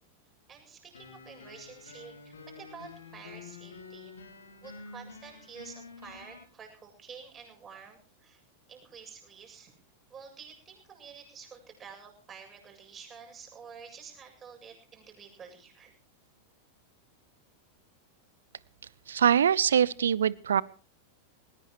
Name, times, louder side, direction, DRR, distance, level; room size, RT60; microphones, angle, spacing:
voice 1, 0.5-4.1 4.6-8.4 8.7-9.7 10.1-15.9, right 6 dB, 25° right, 3 dB, 7.8 m, -49 dB
sound 1, 0.9-6.4, left 4 dB, 70° left, 3.7 m, -48 dB
voice 2, 19.1-20.6, right 8 dB, 65° right, 23 dB, 0.8 m, -23 dB
20.5 x 20.0 x 3.1 m, 0.37 s
figure-of-eight pair, 90°, 0 cm